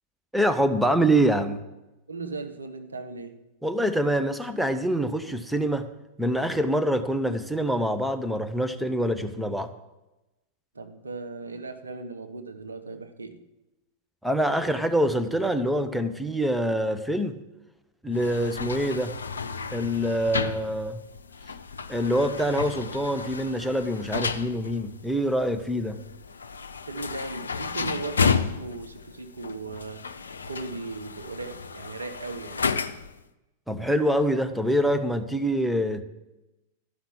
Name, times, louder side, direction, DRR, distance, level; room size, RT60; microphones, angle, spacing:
voice 1, 0.3-1.6 3.6-5.9 6.2-9.7 14.2-17.4 18.0-19.1 19.7-21.0 21.9-26.0 33.7-36.0, equal, ahead, 1.0 m, -25 dB
voice 2, 2.1-3.5 10.7-13.4 26.8-30.1 30.5-32.7, right 3 dB, 85° right, 1.0 m, -37 dB
sound 1, 18.1-33.2, left 5 dB, 80° left, 0.5 m, -32 dB
13.0 x 5.9 x 8.6 m
figure-of-eight pair, 95°, 0 cm